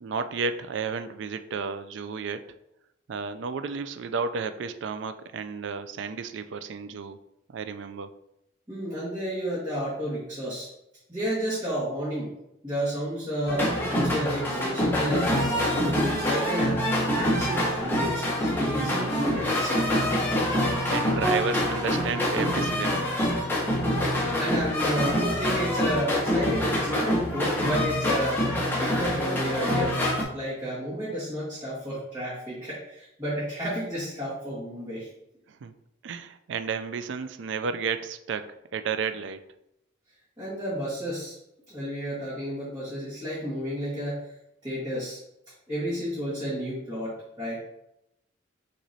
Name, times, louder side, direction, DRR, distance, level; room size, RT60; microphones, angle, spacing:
voice 1, 0.0-2.4 3.1-7.2 7.5-8.1 18.6-19.0 20.5-23.1 35.5-35.7 36.0-39.4, right 5 dB, 65° right, 10 dB, 0.3 m, -32 dB
voice 2, 8.7-10.7 11.1-12.3 12.6-16.8 17.1-20.1 23.9-28.4 28.7-35.1 40.4-41.4 41.7-44.3 44.6-45.2 45.7-47.6, equal, 20° right, -12 dB, 1.6 m, -31 dB
sound 1, 13.5-30.2, equal, 10° left, 0.7 m, -26 dB
5.9 x 3.0 x 2.7 m, 0.82 s
head